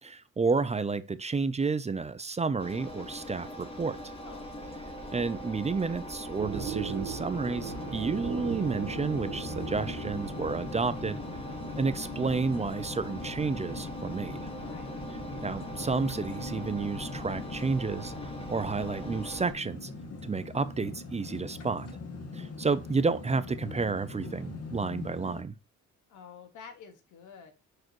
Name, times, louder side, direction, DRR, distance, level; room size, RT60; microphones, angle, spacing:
voice 1, 0.0-4.0 5.1-11.2 11.8-14.4 15.4-19.9 20.2-21.9 22.3-25.5, right 4 dB, 20° right, 0.6 m, -31 dB
Engine, 2.6-19.5, equal, 20° left, 1.8 m, -41 dB
voice 2, 4.2-4.5 14.6-14.9 26.1-27.5, left 6 dB, 80° left, 1.8 m, -49 dB
sound 1, 6.4-11.9, right 7 dB, 80° right, 1.6 m, -39 dB
sound 2, 7.3-25.4, left 3 dB, 55° left, 2.1 m, -41 dB
10.5 x 4.8 x 3.1 m
cardioid pair, 90°, 30 cm